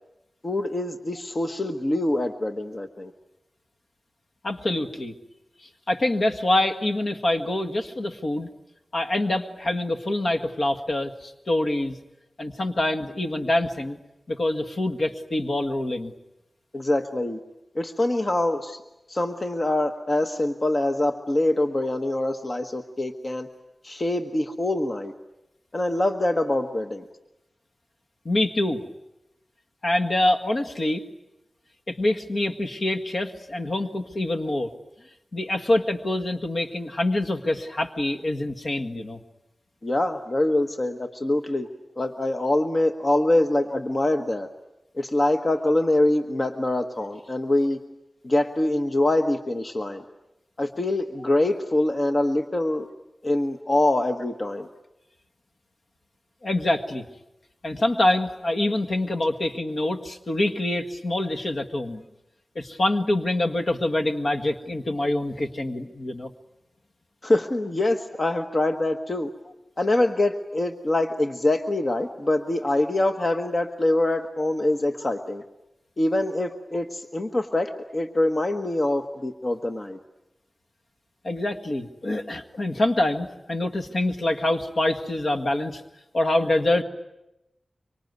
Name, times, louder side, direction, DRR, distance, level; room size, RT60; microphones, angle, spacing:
voice 1, 0.4-3.1 16.7-17.4 17.7-18.8 19.1-23.5 23.8-25.1 25.7-27.1 39.8-41.7 42.0-44.5 44.9-47.8 48.2-50.0 50.6-52.9 53.2-54.7 67.2-69.3 69.8-75.4 76.0-80.0, left 1 dB, 40° left, 7 dB, 1.3 m, -24 dB
voice 2, 4.4-5.1 5.9-8.5 8.9-12.0 12.4-14.0 14.3-16.1 28.3-28.8 29.8-31.0 31.9-34.7 35.3-39.2 56.4-57.1 57.6-62.0 62.6-66.3 81.2-85.8 86.1-86.8, left 1 dB, 65° left, 4 dB, 1.7 m, -25 dB
25.0 x 25.0 x 9.5 m, 0.92 s
wide cardioid pair, 100°, 0 cm